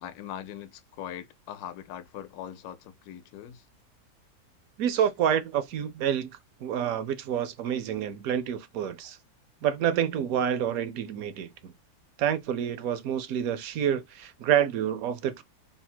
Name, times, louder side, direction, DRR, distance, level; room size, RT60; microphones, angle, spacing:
voice 1, 0.0-3.6, left 10 dB, 75° left, 1.0 m, -41 dB
voice 2, 4.8-6.3 6.6-9.2 9.6-11.7 12.2-15.4, right 9 dB, 70° right, 0.9 m, -28 dB
3.6 x 2.0 x 4.2 m
omnidirectional pair, 1.7 m